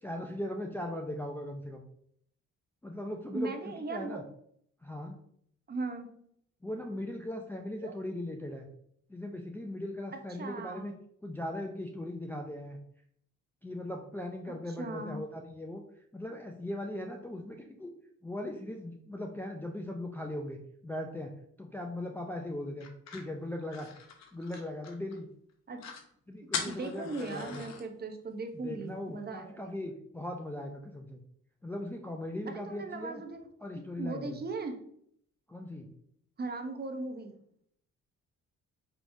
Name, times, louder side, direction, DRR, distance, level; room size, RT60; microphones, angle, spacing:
voice 1, 0.0-1.8 2.8-4.2 4.8-5.2 6.6-8.7 9.1-10.9 11.2-12.8 13.6-15.8 16.1-17.9 18.2-21.3 21.6-22.9 23.1-23.9 24.3-25.3 26.3-27.6 28.5-31.2 31.6-33.2 33.6-34.4 35.5-35.9, left 1 dB, 5° left, 1 dB, 0.4 m, -39 dB
voice 2, 3.3-4.2 5.7-6.1 7.8-7.9 10.4-11.0 14.5-15.2 25.7-25.9 26.6-29.7 32.5-33.5 33.7-34.8 36.4-37.3, right 3 dB, 35° right, 5 dB, 0.7 m, -38 dB
sound 1, 22.8-25.2 25.5-25.6 25.8-26.1 26.5-27.8, left 6 dB, 60° left, 0.8 m, -40 dB
4.8 x 3.2 x 2.6 m, 0.68 s
cardioid pair, 90°, 30 cm